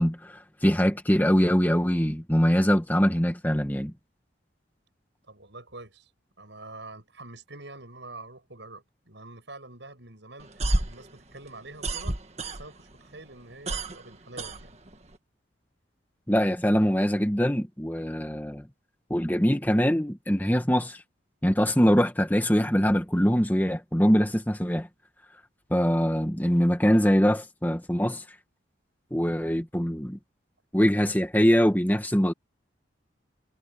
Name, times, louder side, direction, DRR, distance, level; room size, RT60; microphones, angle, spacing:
voice 1, 0.0-3.9 16.3-18.7 19.1-21.0 21.4-24.9 25.7-28.2 29.1-30.2 30.7-32.3, equal, 10° left, 1.8 m, -23 dB
voice 2, 5.3-6.1 6.4-12.2 12.5-14.8, right 2 dB, 75° right, 7.1 m, -46 dB
sound 1, 10.4-13.0 13.3-15.2, right 1 dB, 35° right, 1.7 m, -30 dB
head